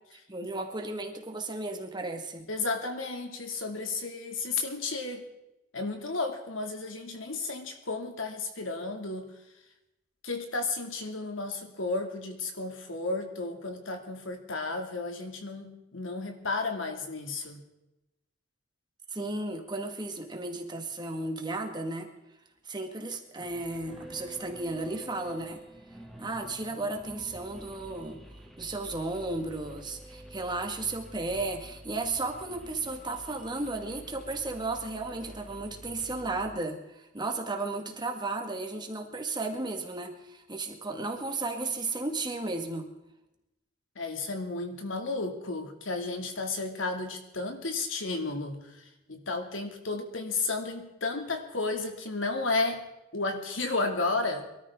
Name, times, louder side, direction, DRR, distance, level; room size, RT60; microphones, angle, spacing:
voice 1, 0.3-2.5 19.1-22.1 22.6-25.6 26.2-28.2 28.6-42.9, right 2 dB, 25° right, 4 dB, 1.8 m, -34 dB
voice 2, 2.5-5.2 5.7-9.3 10.2-17.6 44.0-52.8 53.1-54.5, left 3 dB, 85° left, 4 dB, 2.5 m, -33 dB
sound 1, 23.4-36.5, right 1 dB, ahead, 1.7 m, -48 dB
23.5 x 13.0 x 3.7 m, 0.92 s
head